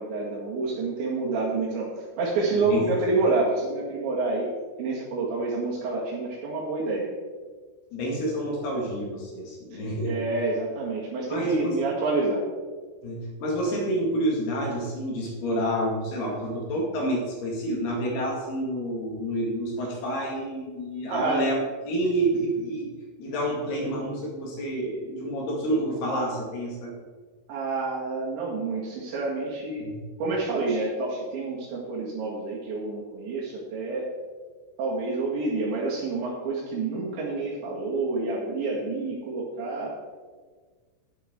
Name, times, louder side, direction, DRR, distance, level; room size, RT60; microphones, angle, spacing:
voice 1, 0.0-4.5 4.8-7.1 10.0-12.4 21.1-21.5 27.5-29.9 30.2-34.1 34.8-39.9, right 3 dB, 65° right, -5 dB, 4.1 m, -28 dB
voice 2, 7.9-10.1 11.3-11.8 13.0-22.9 23.2-26.9 29.8-29.9, right 1 dB, 60° left, -2 dB, 3.8 m, -28 dB
12.0 x 10.5 x 3.7 m, 1.5 s
omnidirectional pair, 5.8 m